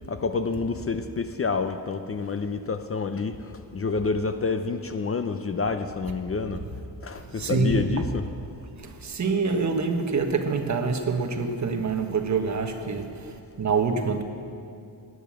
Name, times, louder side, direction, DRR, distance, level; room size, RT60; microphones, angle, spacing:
voice 1, 0.1-6.6 7.0-8.3, left 4 dB, 35° left, 0.6 m, -28 dB
voice 2, 7.3-7.9 8.8-14.2, right 4 dB, 45° right, 1.4 m, -26 dB
17.0 x 10.5 x 7.6 m
wide cardioid pair, 160°, 41 cm